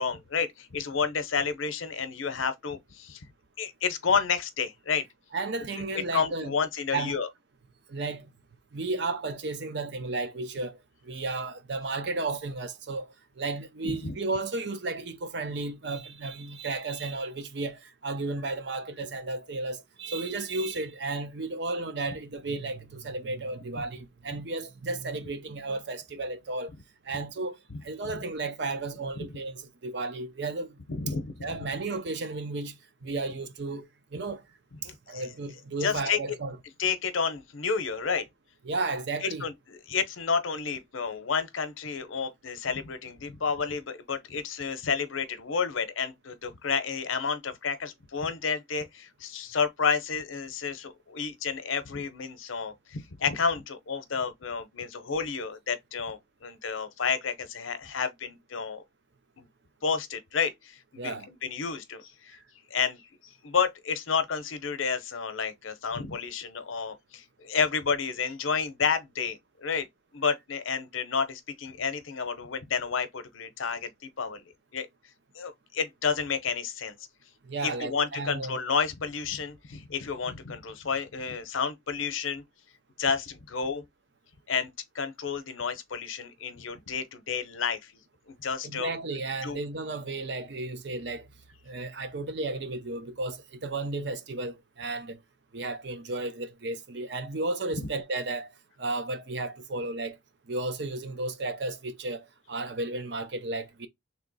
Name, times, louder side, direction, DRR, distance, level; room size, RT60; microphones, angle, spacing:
voice 1, 0.0-3.3 3.6-5.0 6.1-7.3 13.8-14.2 27.7-27.8 28.1-28.2 30.9-31.5 34.8-35.2 35.8-36.2 36.8-38.2 39.2-58.8 59.4-59.5 59.8-62.4 62.7-63.0 63.4-69.9 70.1-74.4 74.7-74.9 75.3-76.9 77.6-82.4 83.0-83.8 84.5-87.9 88.3-88.9 89.4-89.6, left 6 dB, 80° left, 0.7 m, -30 dB
voice 2, 5.3-6.5 6.9-7.2 7.9-8.3 8.7-10.8 11.0-26.7 27.0-30.8 31.4-34.4 35.1-36.6 38.6-39.5 61.0-61.3 77.4-78.6 88.6-91.3 91.7-95.2 95.5-98.5 98.8-100.2 100.5-103.9, right 3 dB, 55° right, 0.6 m, -33 dB
3.3 x 2.8 x 4.0 m
head